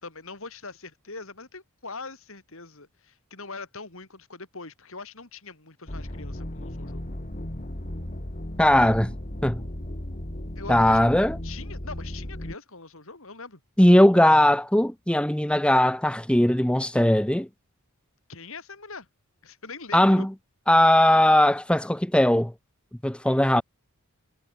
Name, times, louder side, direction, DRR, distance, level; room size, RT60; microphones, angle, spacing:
voice 1, 0.0-7.1 8.8-8.9 10.6-11.1 11.4-13.6 18.3-19.1 19.4-20.3, left 4 dB, 65° left, 4.0 m, -42 dB
sound 1, 5.9-12.6, left 1 dB, 35° left, 2.2 m, -35 dB
voice 2, 8.6-9.1 9.4-9.6 10.7-11.4 13.8-17.5 19.9-20.3 20.7-22.5 23.0-23.6, left 1 dB, 5° left, 0.7 m, -19 dB
head